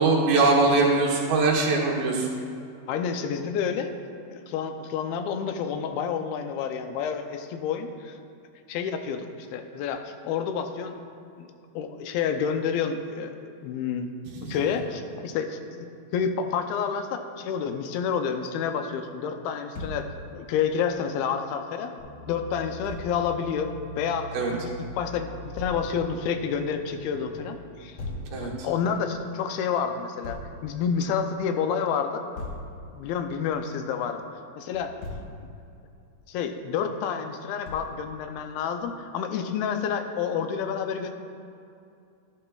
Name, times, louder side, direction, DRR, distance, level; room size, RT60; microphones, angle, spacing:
voice 1, 0.0-2.3 14.3-14.5 24.3-24.5 28.3-28.7, right 3 dB, 75° right, -3 dB, 3.0 m, -22 dB
voice 2, 2.9-3.9 4.3-8.2 8.7-9.3 9.5-11.0 11.4-11.5 11.8-14.1 14.4-15.9 16.1-21.9 22.3-28.0 28.4-32.2 32.9-34.2 34.6-34.9 36.3-41.1, left 7 dB, 90° left, 7 dB, 2.5 m, -29 dB
Thump thud, 19.7-20.0 22.8-23.0 25.6-25.8 28.0-28.3 30.2-30.5 32.4-32.7 34.7-35.3 37.7-38.0, left 2 dB, 65° left, 1.9 m, -37 dB
sound 1, 22.0-27.3, equal, 30° left, 2.3 m, -42 dB
13.0 x 9.7 x 2.3 m, 2.5 s
omnidirectional pair, 4.2 m